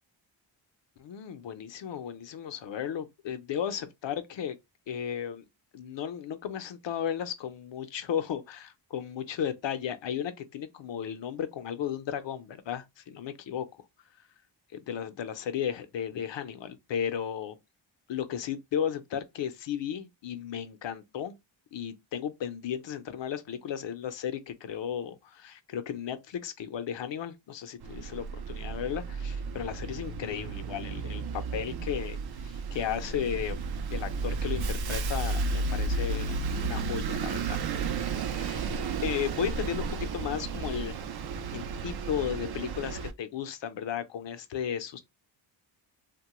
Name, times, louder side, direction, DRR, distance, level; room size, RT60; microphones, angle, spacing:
voice 1, 1.0-4.6 4.9-5.4 5.7-13.7 14.9-17.6 18.1-21.4 21.7-37.6 38.3-38.7 39.0-40.9 41.5-45.0, left 9 dB, 65° left, 0.6 m, -34 dB
Bus, 27.8-43.1, right 4 dB, 55° right, 0.5 m, -33 dB
2.9 x 2.2 x 2.9 m
cardioid pair, 80°, 48 cm